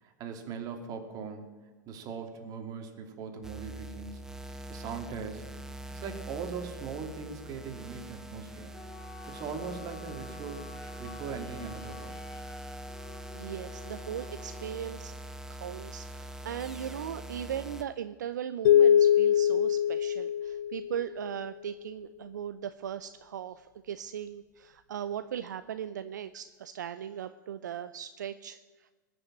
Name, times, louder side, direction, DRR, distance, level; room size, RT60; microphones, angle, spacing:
voice 1, 0.0-4.2 4.7-5.5 5.9-8.7 9.3-10.7 11.0-12.2, right 6 dB, 40° right, 5 dB, 2.6 m, -40 dB
sound 1, 3.4-17.8, right 1 dB, 5° right, 1.2 m, -43 dB
Wind instrument woodwind instrument, 8.7-14.8, left 3 dB, 15° left, 3.1 m, -49 dB
voice 2, 9.0-9.4 13.3-15.2 15.6-28.9, right 9 dB, 70° right, 12 dB, 0.6 m, -38 dB
sound 2, 18.6-21.2, left 9 dB, 65° left, 0.5 m, -23 dB
20.0 x 7.0 x 8.7 m, 1.3 s
hypercardioid pair, 95°, 10 cm